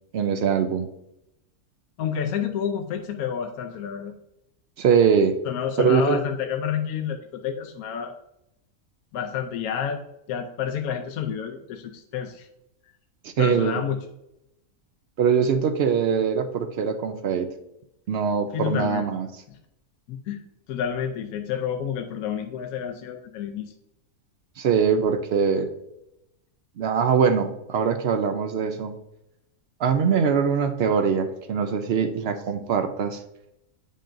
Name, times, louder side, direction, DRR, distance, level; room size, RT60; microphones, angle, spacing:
voice 1, 0.1-0.9 4.8-5.4 5.8-6.2 13.2-13.8 15.2-17.5 18.1-19.3 24.6-25.7 26.8-28.9 29.8-33.2, right 6 dB, 70° right, 8 dB, 0.5 m, -22 dB
voice 2, 2.0-4.1 5.4-8.1 9.1-10.0 10.3-12.5 13.4-14.0 18.5-19.1 19.5-19.6 20.1-20.4 20.7-23.7, left 8 dB, 75° left, 4 dB, 1.0 m, -29 dB
8.6 x 5.3 x 2.5 m, 0.84 s
omnidirectional pair, 1.6 m